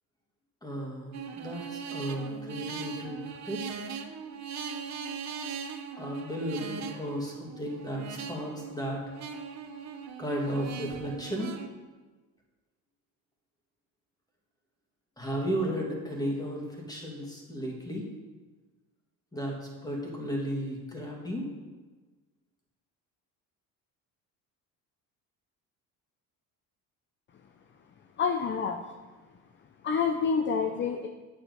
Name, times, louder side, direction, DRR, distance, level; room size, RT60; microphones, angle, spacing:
voice 1, 0.6-3.6 6.0-9.0 10.2-11.6 15.2-18.1 19.3-21.5, equal, 10° left, -1 dB, 2.1 m, -34 dB
sound 1, 1.1-11.7, right 6 dB, 45° right, 0.8 m, -40 dB
voice 2, 28.2-28.8 29.8-31.1, left 6 dB, 30° left, 6 dB, 0.5 m, -27 dB
8.5 x 7.4 x 4.0 m, 1.3 s
cardioid pair, 100°, 38 cm